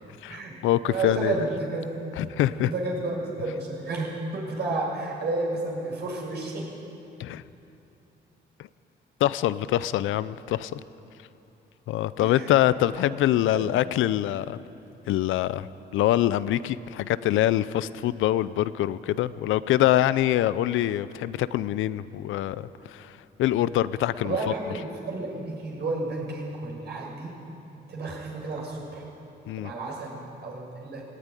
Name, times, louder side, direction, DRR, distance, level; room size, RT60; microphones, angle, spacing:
voice 1, 0.2-1.4 2.2-2.7 7.2-7.4 9.2-10.8 11.9-14.6 15.1-24.4 29.5-29.7, left 13 dB, 85° left, 16 dB, 0.6 m, -25 dB
voice 2, 0.8-2.0 2.5-6.7 12.2-12.5 13.5-13.8 24.2-27.3 27.9-29.0 29.6-31.0, right 2 dB, 55° right, -3 dB, 7.1 m, -31 dB
17.5 x 17.0 x 9.8 m, 2.9 s
cardioid pair, 90°, 20 cm